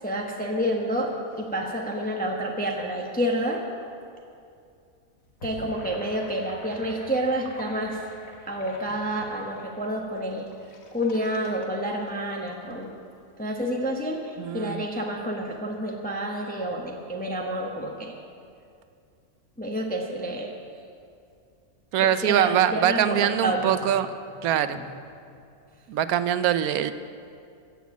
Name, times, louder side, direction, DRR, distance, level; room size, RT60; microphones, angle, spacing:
voice 1, 0.0-3.6 5.4-8.0 8.5-10.5 10.9-12.9 13.4-18.2 19.6-20.5 22.0-23.8 24.8-24.9, equal, 5° left, 0 dB, 0.9 m, -29 dB
Gurgling / Sink (filling or washing), 5.2-12.7, left 2 dB, 70° left, 1.7 m, -46 dB
voice 2, 14.4-14.8 21.9-24.1 24.4-24.8 25.9-26.9, right 10 dB, 85° right, 12 dB, 1.1 m, -23 dB
15.5 x 7.4 x 7.2 m, 2.4 s
omnidirectional pair, 1.5 m